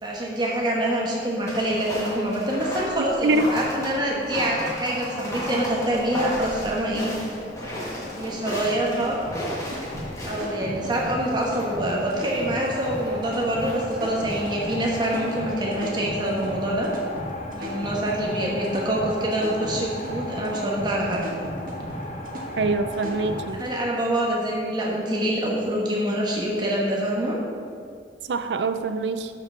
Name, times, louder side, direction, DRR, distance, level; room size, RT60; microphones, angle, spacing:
voice 1, 0.0-7.1 8.2-9.2 10.2-16.9 17.5-21.2 23.5-27.4, right 1 dB, 25° right, -3 dB, 1.3 m, -25 dB
sound 1, 1.5-15.3, left 1 dB, 20° left, 1.7 m, -35 dB
sound 2, 7.1-23.5, left 1 dB, 40° left, 0.9 m, -37 dB
sound 3, 9.3-23.7, equal, 50° right, 1.4 m, -36 dB
voice 2, 22.6-23.6 28.3-29.3, right 3 dB, 80° right, 10 dB, 0.5 m, -24 dB
11.5 x 5.3 x 4.0 m, 2.3 s
head